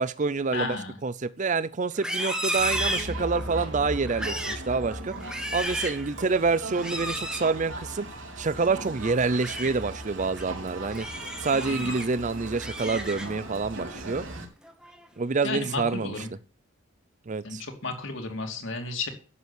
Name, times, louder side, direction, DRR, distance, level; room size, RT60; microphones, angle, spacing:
voice 1, 0.0-5.1 5.5-8.1 8.4-11.1 11.4-14.2 15.2-16.3 17.3-17.6, right 4 dB, 35° right, 0.5 m, -27 dB
voice 2, 0.5-0.9 11.7-11.9 15.4-16.3 17.4-19.1, left 3 dB, 65° left, 2.7 m, -33 dB
Livestock farm animals working animals, 1.9-3.6 4.0-4.7 5.1-6.0 6.8-7.5 9.2-9.7 10.2-10.4 10.9-12.1 12.5-13.5 13.9-14.2 14.6-15.1, right 1 dB, 5° right, 1.6 m, -33 dB
Crowd, 2.5-14.5, right 1 dB, 65° right, 3.4 m, -38 dB
11.0 x 8.0 x 8.0 m
head